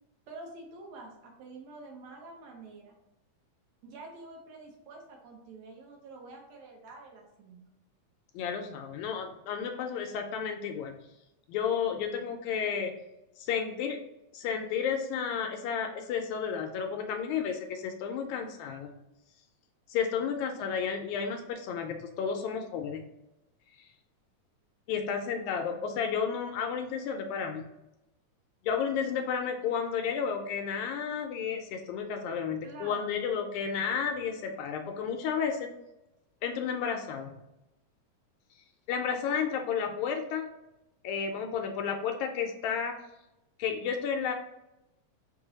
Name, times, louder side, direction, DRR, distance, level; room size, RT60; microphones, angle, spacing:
voice 1, 0.3-2.9 3.8-7.7 32.6-33.1, right 3 dB, 70° right, 0 dB, 1.8 m, -47 dB
voice 2, 8.4-11.0 11.5-12.9 13.4-14.0 14.3-18.9 19.9-23.0 24.9-27.6 28.7-35.7 36.4-37.4 38.9-40.5 41.0-43.0 43.6-44.3, left 7 dB, 80° left, 4 dB, 1.7 m, -32 dB
5.5 x 2.2 x 3.9 m, 0.90 s
omnidirectional pair, 3.5 m